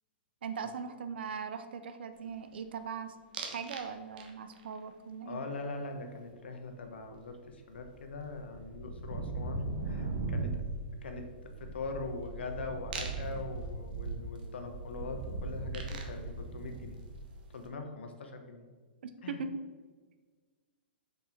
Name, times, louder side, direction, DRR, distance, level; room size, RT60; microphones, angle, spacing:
voice 1, 0.4-3.1 3.5-5.4 19.0-19.5, right 6 dB, 75° right, 9 dB, 0.6 m, -40 dB
sound 1, 3.3-3.9 4.2-4.6 7.1-7.2 7.4-17.5, right 3 dB, 55° right, 1.2 m, -39 dB
voice 2, 5.3-10.5 11.0-11.2 11.6-17.0 17.5-18.7 19.2-19.4, left 3 dB, 85° left, 5 dB, 1.2 m, -42 dB
6.3 x 5.3 x 4.4 m, 1.5 s
hypercardioid pair, 155°, 6 cm